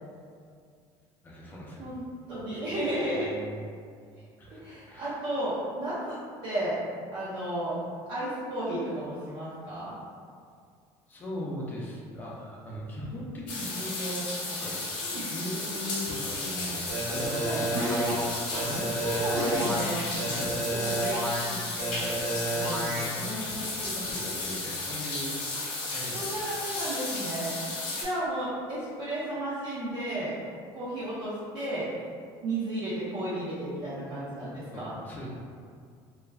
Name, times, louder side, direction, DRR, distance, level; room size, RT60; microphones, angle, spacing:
voice 1, 1.2-1.9 2.3-3.7 4.4-5.1 11.1-14.8 15.2-18.2 18.6-19.8 20.2-25.4 25.9-26.5 34.7-35.3, equal, 20° left, -5 dB, 0.5 m, -39 dB
voice 2, 2.3-3.3 4.6-6.8 7.1-7.8 8.1-9.9 15.0-15.3 17.4-17.6 18.5-18.6 19.0-20.1 25.5-25.6 26.1-27.5 28.0-30.3 30.7-31.9 32.4-34.9, right 1 dB, 45° right, -10 dB, 0.6 m, -33 dB
sound 1, 13.5-28.0, left 2 dB, 55° left, 0.7 m, -34 dB
sound 2, 16.9-18.1 18.5-19.8 20.2-21.4 21.8-23.0, right 1 dB, 65° right, 1.1 m, -30 dB
2.3 x 2.2 x 3.2 m, 2.2 s
cardioid pair, 170°, 10 cm